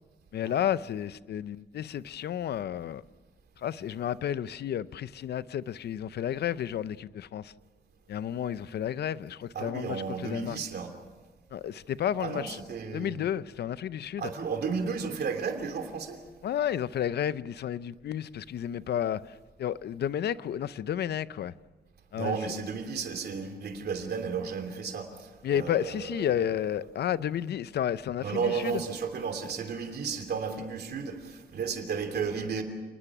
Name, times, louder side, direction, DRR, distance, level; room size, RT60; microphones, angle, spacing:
voice 1, 0.3-3.0 3.6-7.5 8.1-10.6 11.5-12.6 12.9-14.3 16.4-21.5 22.1-22.4 25.4-28.8, left 10 dB, 75° left, 0.6 m, -31 dB
voice 2, 9.5-10.9 12.2-13.3 14.2-16.2 22.1-26.3 28.2-32.6, right 5 dB, 65° right, 3.0 m, -33 dB
29.5 x 20.0 x 6.1 m
wide cardioid pair, 130°, 17 cm